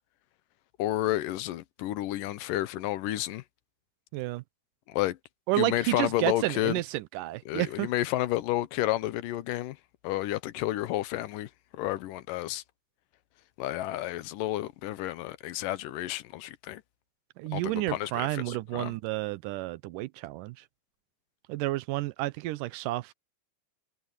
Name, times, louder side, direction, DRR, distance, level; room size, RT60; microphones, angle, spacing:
voice 1, 0.8-3.4 4.9-5.2 5.6-6.8 7.5-9.8 10.0-12.6 13.6-16.8 17.5-19.0, left 15 dB, 85° left, 2.5 m, -31 dB
voice 2, 4.1-4.4 5.5-7.9 17.4-20.6 21.5-23.1, right 18 dB, 90° right, 2.2 m, -31 dB
omnidirectional pair, 3.8 m